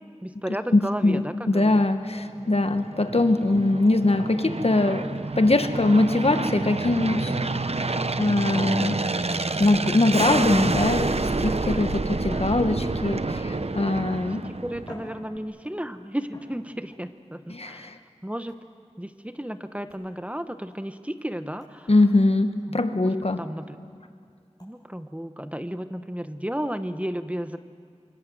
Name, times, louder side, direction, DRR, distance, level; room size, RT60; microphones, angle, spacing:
voice 1, 0.2-1.9 14.1-17.9 18.2-18.5 19.0-21.9 22.7-23.8 24.6-27.6, equal, 10° right, 10 dB, 1.0 m, -33 dB
voice 2, 0.7-5.1 5.4-7.3 8.2-9.0 9.6-14.4 17.5-17.9 21.9-23.4, left 2 dB, 55° left, 8 dB, 1.4 m, -22 dB
Aircraft, 2.3-15.1, right 3 dB, 60° right, 0.9 m, -28 dB
sound 1, 9.6-10.1 10.7-11.3 12.2-13.3 14.2-14.3 14.8-15.8 16.3-17.0 18.5-18.8 19.9-20.1 20.7-20.8 21.2-21.3 21.6-21.8 22.1-22.2 22.6-22.7 23.1-23.2 23.6-23.7 24.6-24.7, equal, 35° left, 7.7 m, -48 dB
25.5 x 25.0 x 7.9 m, 2.2 s
wide cardioid pair, 50°, 12 cm